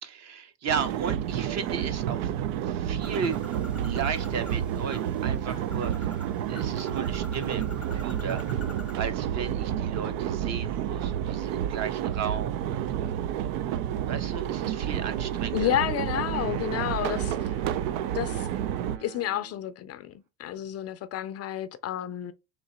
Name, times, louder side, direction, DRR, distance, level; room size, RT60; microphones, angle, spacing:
voice 1, 0.0-2.3 2.6-3.4 3.8-6.1 6.5-8.4 9.0-12.9 14.1-16.1, right 6 dB, 45° right, 0.8 m, -35 dB
sound 1, 0.7-19.0, right 10 dB, 90° right, 0.5 m, -30 dB
Bird, 3.0-9.1, left 2 dB, 5° right, 0.7 m, -46 dB
voice 2, 15.5-17.5 18.1-18.5 19.0-20.1 20.4-22.3, left 12 dB, 40° left, 0.4 m, -30 dB
sound 2, 16.3-19.7, right 7 dB, 65° right, 1.1 m, -44 dB
3.7 x 2.8 x 4.2 m
cardioid pair, 115°, 38 cm